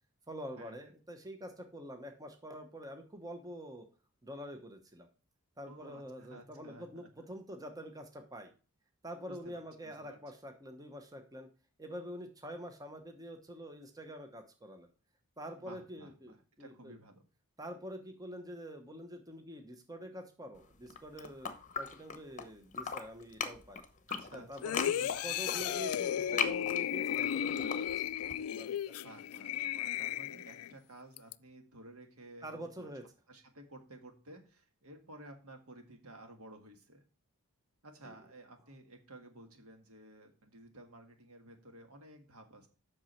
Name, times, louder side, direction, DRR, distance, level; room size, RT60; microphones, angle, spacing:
voice 1, 0.3-3.9 4.2-5.1 5.6-8.5 9.0-11.5 11.8-14.9 15.4-17.0 17.6-21.5 21.8-23.9 24.3-28.1 28.4-28.9 32.4-33.0 38.0-38.1, equal, 15° right, 5 dB, 0.9 m, -46 dB
voice 2, 5.7-7.3 9.2-10.2 15.6-17.2 24.1-25.4 29.0-32.9 33.3-37.0 37.8-42.7, right 1 dB, 75° right, 5 dB, 1.7 m, -54 dB
sound 1, 20.8-22.5 22.7-28.3, left 6 dB, 35° left, 0.9 m, -39 dB
sound 2, 24.6-30.7 31.2-31.3, left 10 dB, 75° left, 0.3 m, -35 dB
8.0 x 6.1 x 4.4 m, 0.36 s
head